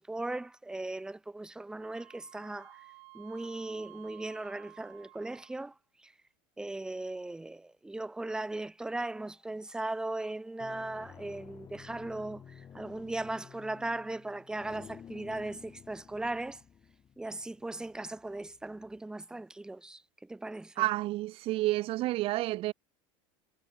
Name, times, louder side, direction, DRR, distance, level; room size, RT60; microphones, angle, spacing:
voice 1, 0.0-2.9 3.1-6.1 6.6-16.6 17.2-20.9, right 2 dB, 5° right, 0.7 m, -38 dB
Wind instrument woodwind instrument, 1.8-5.7, right 30 dB, 60° right, 4.9 m, -54 dB
sound 1, 9.1-9.6 10.3-19.0, left 8 dB, 25° left, 1.9 m, -53 dB
voice 2, 20.8-22.7, right 17 dB, 45° right, 0.5 m, -30 dB
supercardioid pair, 130°, 13 cm